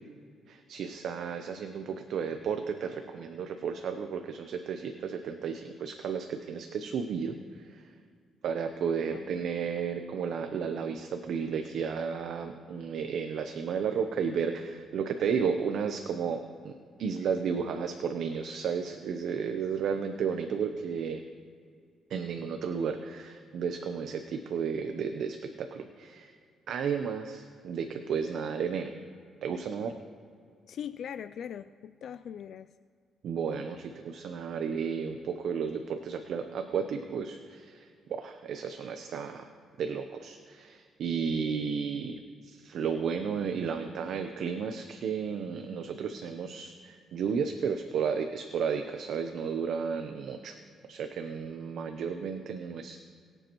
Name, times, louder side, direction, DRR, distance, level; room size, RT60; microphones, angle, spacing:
voice 1, 0.5-7.8 8.4-21.2 22.1-26.3 26.7-28.9 29.4-29.9 33.2-39.5 39.8-50.6 50.9-53.0, right 6 dB, 70° right, 6 dB, 0.7 m, -33 dB
voice 2, 30.7-32.7, left 9 dB, 65° left, 13 dB, 0.3 m, -41 dB
22.0 x 7.9 x 3.1 m, 2.2 s
cardioid pair, 90°, 0 cm